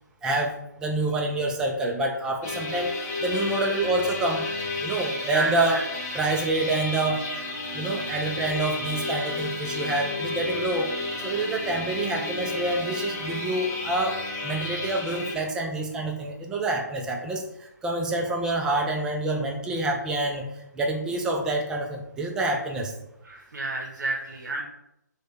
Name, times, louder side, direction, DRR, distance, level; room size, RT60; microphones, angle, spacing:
voice 1, 0.2-2.9 3.2-4.4 4.8-5.8 6.1-7.2 7.7-10.9 11.2-14.1 14.4-20.4 20.7-22.9, right 2 dB, 5° right, 1 dB, 0.3 m, -27 dB
sound 1, 2.4-15.3, left 2 dB, 20° left, 0.8 m, -32 dB
voice 2, 5.3-5.8 23.2-24.6, right 3 dB, 75° right, 0 dB, 0.6 m, -30 dB
3.2 x 2.2 x 3.9 m, 0.81 s
figure-of-eight pair, 140°, 10 cm